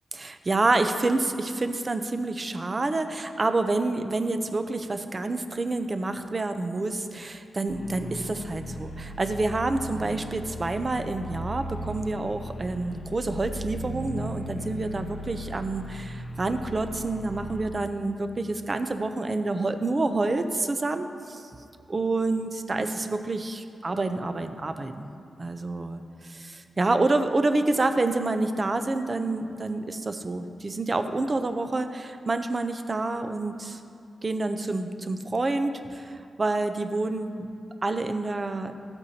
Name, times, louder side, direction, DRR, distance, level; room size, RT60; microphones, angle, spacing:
voice 1, 0.1-21.4 21.9-25.1 25.4-26.0 26.3-33.8 34.2-37.5 37.8-38.7, right 2 dB, 30° right, 8 dB, 0.5 m, -28 dB
sound 1, 7.7-17.7, equal, 40° left, 0.8 m, -37 dB
13.5 x 7.9 x 2.8 m, 2.6 s
wide cardioid pair, 125°, 0 cm